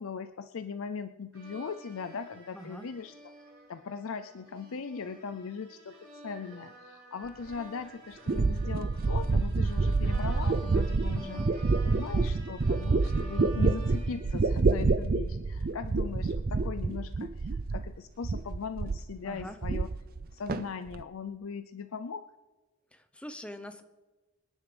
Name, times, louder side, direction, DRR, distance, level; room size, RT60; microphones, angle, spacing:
voice 1, 0.0-3.3 3.7-19.9 20.3-22.3, left 5 dB, 65° left, 10 dB, 0.5 m, -39 dB
sound 1, 1.3-15.0, right 1 dB, 60° right, 6.1 m, -49 dB
voice 2, 2.5-2.9 11.2-11.5 19.2-19.6 22.9-23.8, equal, 5° left, 8 dB, 0.7 m, -43 dB
sound 2, 7.5-7.6 8.3-18.0 18.2-19.1 19.4-20.2 20.5-21.0, right 3 dB, 40° right, 0.4 m, -28 dB
26.5 x 10.5 x 3.4 m, 1.2 s
head